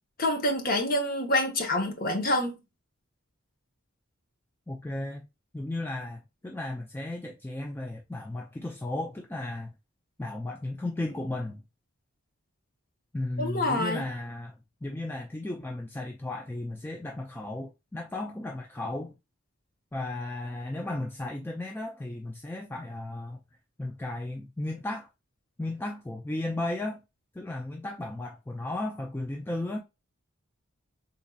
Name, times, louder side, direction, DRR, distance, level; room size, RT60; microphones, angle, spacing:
voice 1, 0.2-2.6 13.4-14.1, left 1 dB, 40° left, 0.9 m, -27 dB
voice 2, 4.7-5.3 5.5-9.7 10.2-11.6 13.1-14.5 14.8-19.2 19.9-23.4 23.8-25.1 25.6-27.0 27.3-29.8, left 2 dB, 10° left, 0.3 m, -35 dB
4.0 x 2.7 x 2.2 m
head